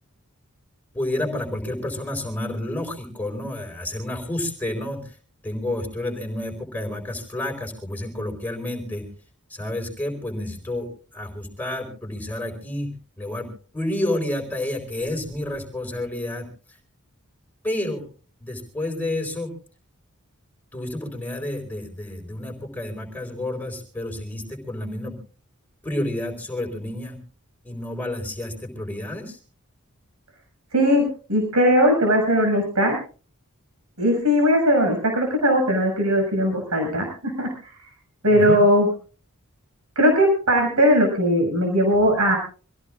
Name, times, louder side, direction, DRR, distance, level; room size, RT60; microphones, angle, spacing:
voice 1, 0.9-5.1 5.4-9.1 9.5-13.5 13.7-16.5 17.6-18.1 18.4-19.5 20.7-25.2 25.8-27.2 27.6-29.4 38.3-38.6, left 1 dB, 10° left, 3 dB, 4.4 m, -30 dB
voice 2, 30.7-33.0 34.0-37.5 38.2-38.9 40.0-42.4, equal, 85° right, 1 dB, 6.3 m, -19 dB
26.0 x 16.5 x 2.5 m, 0.38 s
head